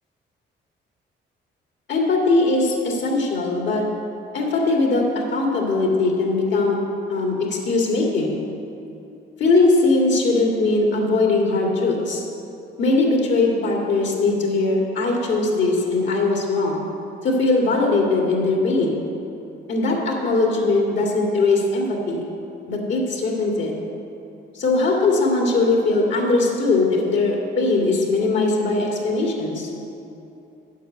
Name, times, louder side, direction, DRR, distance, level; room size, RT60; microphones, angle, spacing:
voice 1, 1.9-3.8 4.3-6.8 7.1-8.4 9.4-12.2 12.8-16.8 17.2-19.0 19.7-22.3 22.7-23.7 24.5-29.7, left 3 dB, 65° left, -1 dB, 2.2 m, -20 dB
8.3 x 5.8 x 8.0 m, 2.8 s
cardioid pair, 90°, 20 cm